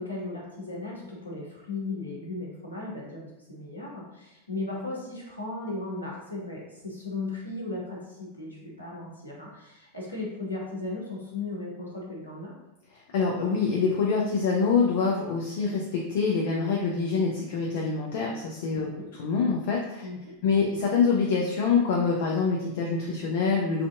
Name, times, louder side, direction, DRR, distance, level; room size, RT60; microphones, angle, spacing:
voice 1, 0.0-12.5 18.7-19.1 20.0-20.4, left 2 dB, 85° left, -4 dB, 0.8 m, -36 dB
voice 2, 13.1-18.9 19.2-20.1 20.4-23.9, left 5 dB, 50° left, -1 dB, 0.4 m, -25 dB
3.3 x 2.5 x 2.4 m, 0.93 s
figure-of-eight pair, 90°, 0 cm